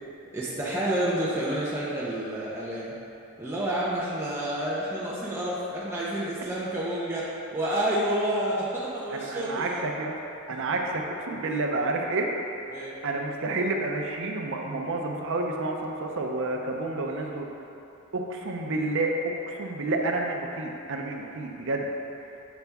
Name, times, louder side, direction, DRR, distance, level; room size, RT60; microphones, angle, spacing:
voice 1, 0.3-2.9 3.4-9.8 12.7-13.0 17.1-17.2, right 1 dB, 10° right, -8 dB, 0.6 m, -29 dB
voice 2, 9.1-10.1 10.5-12.3 13.0-17.5 18.1-21.9, right 2 dB, 60° right, 1 dB, 0.6 m, -29 dB
7.1 x 4.1 x 3.5 m, 2.8 s
head